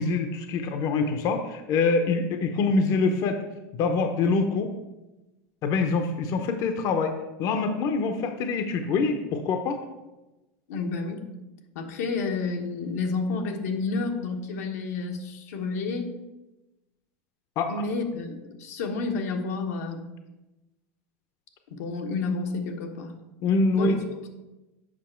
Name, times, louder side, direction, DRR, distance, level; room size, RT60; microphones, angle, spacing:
voice 1, 0.0-3.4 3.7-4.7 5.6-7.1 7.4-9.8 17.6-17.7 23.4-24.0, left 4 dB, 50° left, 6 dB, 0.7 m, -25 dB
voice 2, 10.7-11.2 11.7-16.1 17.7-20.0 21.7-23.1 23.7-24.0, left 4 dB, 85° left, 3 dB, 1.1 m, -30 dB
7.4 x 5.3 x 4.4 m, 1.0 s
supercardioid pair, 120°, 8 cm